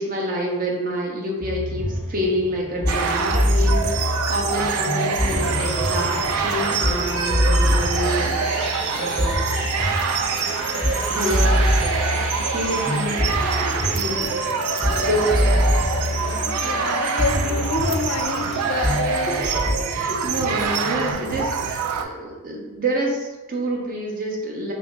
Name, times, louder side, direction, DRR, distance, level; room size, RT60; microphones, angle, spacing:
voice 1, 0.0-8.7 8.9-9.4 10.4-10.5 11.1-11.6 12.5-13.3 13.9-14.3 14.7-15.6 19.3-24.7, right 1 dB, 40° right, -1 dB, 0.6 m, -27 dB
sound 1, 1.4-21.1, left 1 dB, ahead, 0.9 m, -25 dB
sound 2, 2.9-22.0, right 6 dB, 90° right, 0.3 m, -25 dB
sound 3, 5.1-19.3, left 1 dB, 25° left, 0.6 m, -33 dB
voice 2, 16.6-19.4, left 4 dB, 75° left, 5 dB, 0.4 m, -27 dB
3.0 x 2.6 x 3.2 m, 1.2 s
head